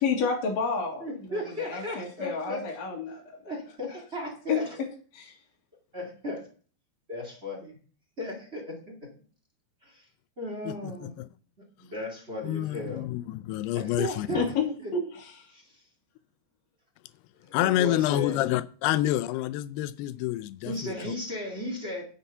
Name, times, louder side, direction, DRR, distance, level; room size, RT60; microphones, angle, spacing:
voice 1, 0.0-3.4 4.5-4.6 5.1-5.3 14.3-14.7 14.9-15.5, left 5 dB, 50° left, 2.9 m, -30 dB
voice 2, 1.0-2.6 3.4-4.8 5.9-6.5 7.1-7.7 8.2-9.0 9.8-10.1 10.4-11.1 11.8-13.0 13.7-14.4 14.8-14.9 15.5-15.8 17.4-18.4 20.7-22.0, left 1 dB, 20° right, 1.8 m, -35 dB
voice 3, 10.7-11.3 12.4-14.5 17.5-21.1, left 14 dB, 90° left, 2.6 m, -28 dB
10.0 x 6.9 x 5.5 m
omnidirectional pair, 4.5 m